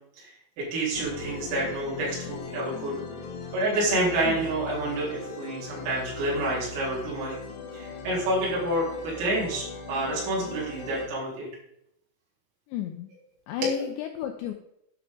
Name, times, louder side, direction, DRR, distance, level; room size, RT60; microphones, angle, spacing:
voice 1, 0.2-2.9 3.5-7.3 7.7-11.5 13.6-13.7, right 1 dB, 75° right, -6 dB, 6.5 m, -28 dB
sound 1, 0.9-11.1, left 3 dB, 65° left, 3.2 m, -39 dB
voice 2, 12.7-13.1 13.5-14.5, left 10 dB, 85° left, 4 dB, 2.6 m, -33 dB
11.5 x 9.6 x 3.8 m, 0.78 s
omnidirectional pair, 6.0 m